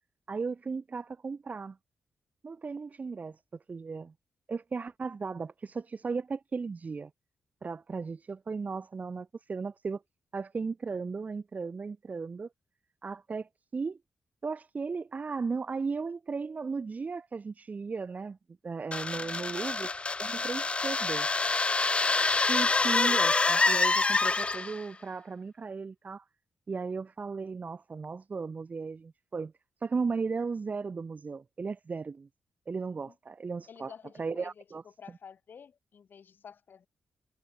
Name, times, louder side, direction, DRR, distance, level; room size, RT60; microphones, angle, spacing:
voice 1, 0.3-1.8 2.4-3.4 3.7-4.1 4.5-7.1 7.6-10.0 10.3-12.5 13.0-14.0 14.4-18.4 18.6-19.9 20.2-21.3 22.5-26.2 26.7-29.5 29.8-32.3 32.7-33.9 34.2-34.8, right 4 dB, 45° right, 1.1 m, -36 dB
sound 1, 18.9-24.8, left 3 dB, 30° left, 0.4 m, -26 dB
voice 2, 19.1-19.5 33.1-33.2 33.7-34.6 35.0-36.9, left 7 dB, 65° left, 5.8 m, -51 dB
supercardioid pair, 45°, 4 cm